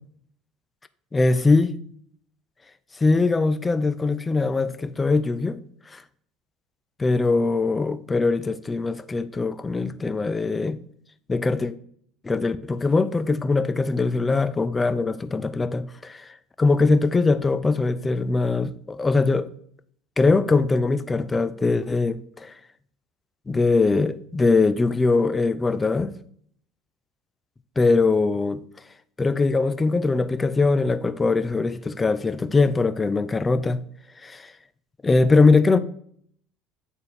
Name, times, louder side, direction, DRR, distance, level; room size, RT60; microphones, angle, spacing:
voice 1, 1.1-1.7 3.0-5.6 5.9-6.0 7.0-10.8 11.3-11.7 12.2-16.3 16.6-19.5 20.2-22.5 23.5-26.1 27.8-28.6 29.2-33.8 34.2-34.5 35.0-35.8, left 3 dB, 20° left, 0.5 m, -21 dB
9.2 x 4.2 x 3.5 m
supercardioid pair, 90°, 0 cm